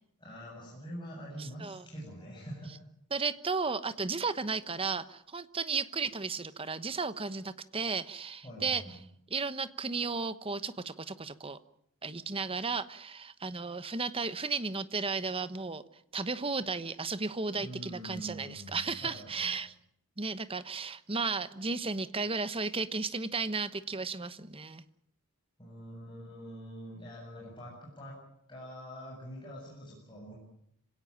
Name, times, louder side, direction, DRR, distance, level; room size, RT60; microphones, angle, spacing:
voice 1, 0.2-2.7 8.4-8.9 17.5-19.5 25.6-28.2 28.5-30.3, equal, 20° left, -4 dB, 7.8 m, -45 dB
voice 2, 1.4-1.8 3.1-8.8 9.3-11.6 12.0-15.8 16.1-19.7 20.2-24.8, right 4 dB, 25° right, 13 dB, 1.1 m, -34 dB
26.5 x 17.5 x 8.8 m, 0.74 s
head